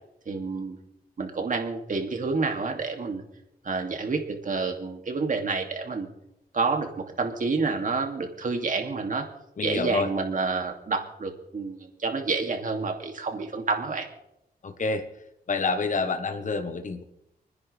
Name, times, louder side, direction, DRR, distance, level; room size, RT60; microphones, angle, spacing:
voice 1, 0.3-0.8 1.2-3.2 3.6-6.1 6.5-9.2 9.6-14.1, right 4 dB, 55° right, 3 dB, 2.6 m, -29 dB
voice 2, 9.6-10.1 14.6-15.0 15.5-17.0, left 4 dB, 50° left, 7 dB, 1.3 m, -27 dB
29.5 x 10.0 x 3.5 m, 0.85 s
cardioid pair, 70°, 16 cm